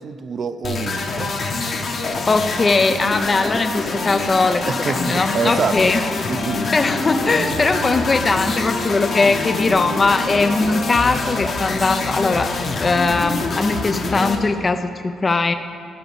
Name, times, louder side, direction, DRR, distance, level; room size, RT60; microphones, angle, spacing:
voice 1, 0.0-1.3 4.7-5.8 6.3-6.6 7.3-7.6, right 5 dB, 50° right, 12 dB, 0.5 m, -26 dB
sound 1, 0.6-14.4, left 3 dB, 50° left, 1.2 m, -25 dB
voice 2, 2.3-6.0 6.7-12.5 12.8-15.5, left 3 dB, 30° left, 8 dB, 0.4 m, -20 dB
Wind instrument woodwind instrument, 4.7-12.9, left 2 dB, 70° left, 2.4 m, -33 dB
12.0 x 4.9 x 7.0 m, 2.4 s
cardioid pair, 90°, 0 cm